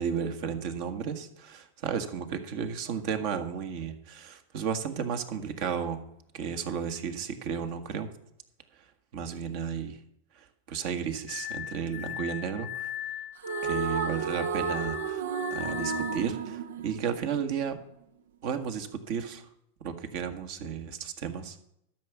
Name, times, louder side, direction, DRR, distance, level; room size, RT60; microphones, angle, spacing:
voice 1, 0.0-6.0 6.3-8.1 9.1-10.0 10.3-12.9 13.6-15.2 15.5-17.8 18.4-19.5 19.8-21.6, right 7 dB, 60° right, 8 dB, 1.7 m, -33 dB
Glass, 11.3-16.3, left 12 dB, 50° left, 0.8 m, -38 dB
sound 1, 13.4-17.8, right 6 dB, 75° right, 0.6 m, -33 dB
12.5 x 6.1 x 8.1 m, 0.75 s
hypercardioid pair, 105°, 0 cm